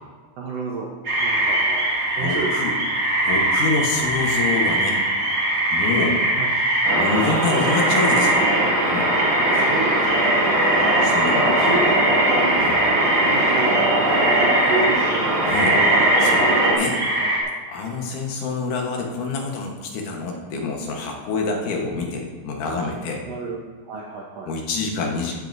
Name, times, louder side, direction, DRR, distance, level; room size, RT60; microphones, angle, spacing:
voice 1, 0.4-0.9 1.2-1.8 2.2-2.5 6.4-6.5 9.4-10.4 11.3-12.0 12.3-12.6 13.3-15.5 16.6-17.5 22.7-22.9 23.3-23.6 23.9-24.5, right 4 dB, 90° right, -2 dB, 1.3 m, -30 dB
sound 1, 1.0-17.4, right 1 dB, 40° right, 1.6 m, -22 dB
voice 2, 2.2-2.8 3.2-5.0 5.7-6.2 6.9-8.4 8.9-9.1 11.0-11.5 12.6-12.8 15.4-15.8 16.2-16.5 16.8-17.0 17.7-23.2 24.5-25.3, left 3 dB, 65° left, 0 dB, 2.5 m, -26 dB
sound 2, 6.8-16.7, right 1 dB, 55° right, 3.5 m, -21 dB
13.5 x 9.3 x 2.6 m, 1.5 s
omnidirectional pair, 4.2 m